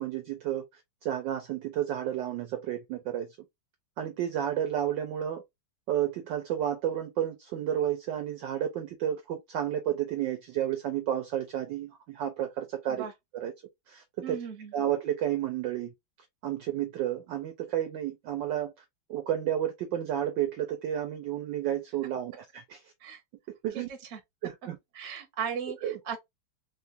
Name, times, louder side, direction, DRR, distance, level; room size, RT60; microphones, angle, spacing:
voice 1, 0.0-3.3 4.0-5.4 5.9-13.1 13.3-13.5 13.9-14.4 14.7-15.9 16.4-18.7 19.1-22.8 23.6-23.9 24.4-24.8 25.8-26.0, right 11 dB, 70° right, 1.1 m, -31 dB
voice 2, 14.2-14.7 23.0-23.2 23.7-23.8 24.1-24.2 24.9-26.2, right 7 dB, 40° right, 1.1 m, -36 dB
3.8 x 2.4 x 2.7 m
omnidirectional pair, 2.4 m